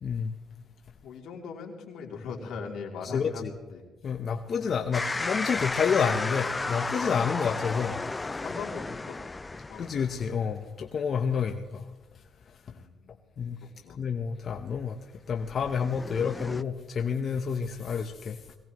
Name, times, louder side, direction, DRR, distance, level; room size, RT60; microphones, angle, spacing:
voice 1, 0.0-0.3 3.1-3.5 4.0-8.0 8.3-8.4 9.8-11.8 13.4-13.6 14.0-15.0 15.3-18.5, left 6 dB, 55° left, 5 dB, 0.9 m, -29 dB
voice 2, 1.0-3.4 3.7-3.8 7.0-7.2 8.4-9.2 9.5-9.9 12.7-13.2 13.6-14.0, left 5 dB, 80° left, 0 dB, 2.9 m, -40 dB
sound 1, 4.9-10.4 15.5-16.6, left 3 dB, 20° left, 0.4 m, -33 dB
21.5 x 17.5 x 3.1 m, 1.2 s
cardioid pair, 90°, 0 cm